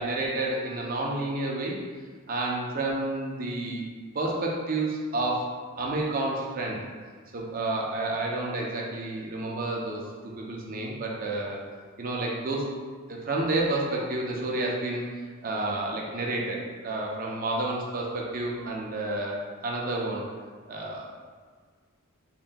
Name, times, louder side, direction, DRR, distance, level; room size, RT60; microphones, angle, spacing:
voice 1, 0.0-1.8 2.3-3.9 4.1-5.5 5.8-6.9 7.3-10.0 10.4-11.6 12.0-12.6 13.1-15.0 15.4-20.2 20.7-21.1, right 2 dB, 40° right, -2 dB, 0.5 m, -30 dB
4.2 x 3.7 x 2.2 m, 1.6 s
head